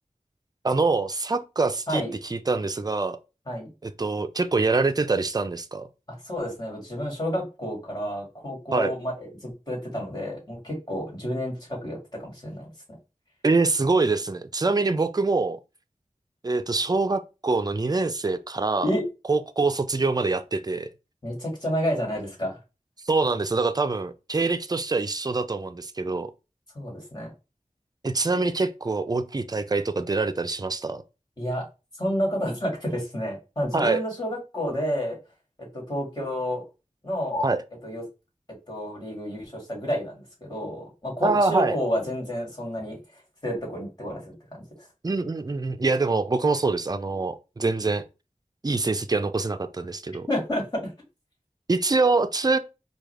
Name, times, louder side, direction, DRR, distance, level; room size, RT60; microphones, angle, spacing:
voice 1, 0.6-3.2 3.8-5.9 8.7-8.9 13.4-15.6 16.4-18.9 19.3-20.9 23.1-26.3 28.0-31.0 33.7-34.0 37.4-37.6 41.2-41.8 45.0-48.0 48.6-50.3 51.7-52.6, right 3 dB, 30° right, 0.4 m, -25 dB
voice 2, 6.2-12.7 18.8-19.0 21.2-22.6 26.8-27.3 31.4-31.6 32.0-35.2 35.7-36.6 37.0-37.5 37.8-38.0 38.7-43.0 43.4-44.4 44.8-44.9 50.3-50.9, equal, 30° left, 1.9 m, -30 dB
4.7 x 2.3 x 3.3 m
wide cardioid pair, 50°, 13 cm